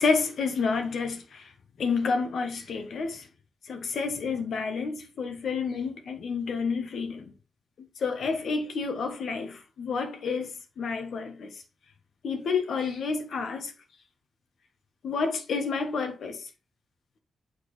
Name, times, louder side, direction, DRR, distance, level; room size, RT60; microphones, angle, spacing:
voice 1, 0.0-1.5 1.8-3.3 3.7-7.3 7.8-11.5 12.2-13.7 15.0-16.5, left 4 dB, 75° left, 1.3 m, -29 dB
6.4 x 4.7 x 3.2 m
supercardioid pair, 50°, 0 cm